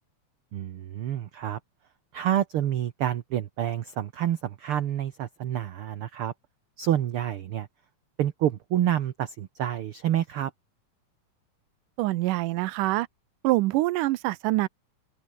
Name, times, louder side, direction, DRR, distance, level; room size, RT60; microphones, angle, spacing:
voice 1, 0.5-1.6 2.1-6.3 6.8-7.7 8.2-10.5, right 11 dB, 65° right, 1.4 m, -28 dB
voice 2, 12.0-13.1 13.4-14.7, right 18 dB, 85° right, 2.2 m, -25 dB
open air
omnidirectional pair, 3.7 m